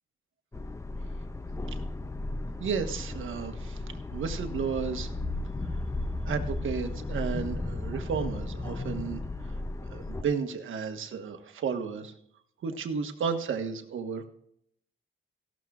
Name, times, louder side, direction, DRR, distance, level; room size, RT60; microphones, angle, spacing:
sound 1, 0.5-10.2, left 2 dB, 15° left, 0.5 m, -35 dB
voice 1, 2.6-3.8 4.1-5.1 6.2-9.6 9.9-12.1 12.6-14.2, right 6 dB, 70° right, 7 dB, 1.4 m, -33 dB
15.5 x 12.5 x 2.4 m, 0.71 s
cardioid pair, 100°, 21 cm